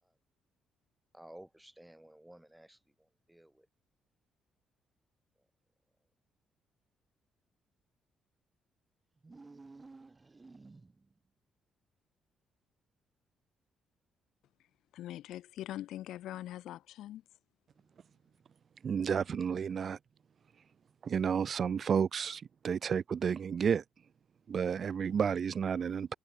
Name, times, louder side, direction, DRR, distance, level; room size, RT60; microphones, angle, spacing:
voice 1, 1.1-3.7, right 1 dB, 5° right, 4.2 m, -55 dB
sound 1, 9.2-11.2, right 3 dB, 25° right, 7.0 m, -53 dB
voice 2, 14.9-17.2, left 13 dB, 80° left, 1.4 m, -42 dB
voice 3, 18.8-20.0 21.0-23.8 24.5-26.1, right 7 dB, 50° right, 0.7 m, -31 dB
cardioid pair, 90°, 0 cm